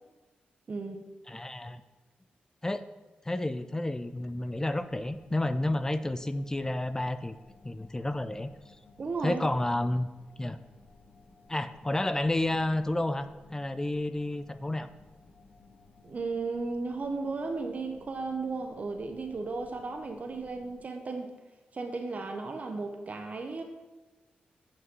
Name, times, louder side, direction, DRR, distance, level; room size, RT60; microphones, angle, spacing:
voice 1, 0.7-1.0 9.0-9.4 16.0-21.3 21.7-23.6, right 3 dB, 45° right, 5 dB, 0.9 m, -35 dB
voice 2, 1.3-1.8 2.6-2.8 3.2-7.3 7.6-8.8 9.2-10.1 10.4-10.6 11.5-14.9, left 1 dB, 15° left, 12 dB, 0.5 m, -30 dB
sound 1, 3.9-20.8, left 3 dB, 65° left, 1.5 m, -58 dB
8.4 x 5.5 x 5.4 m, 1.2 s
cardioid pair, 75°, 3 cm